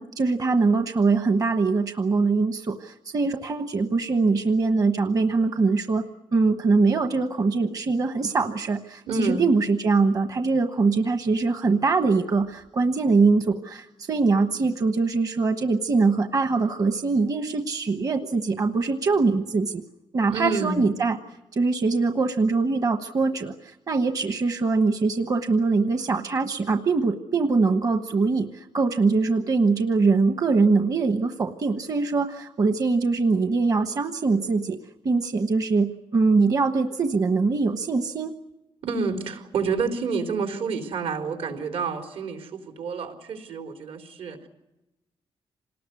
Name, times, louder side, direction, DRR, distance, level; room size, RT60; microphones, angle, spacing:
voice 1, 0.0-6.0 6.3-19.8 20.1-21.2 21.5-34.8 35.0-38.3, right 4 dB, 40° right, 7 dB, 1.2 m, -23 dB
voice 2, 9.1-9.5 20.3-20.9 38.8-44.5, right 4 dB, 75° right, 5 dB, 4.2 m, -29 dB
27.5 x 19.5 x 9.6 m, 0.96 s
wide cardioid pair, 180°, 10 cm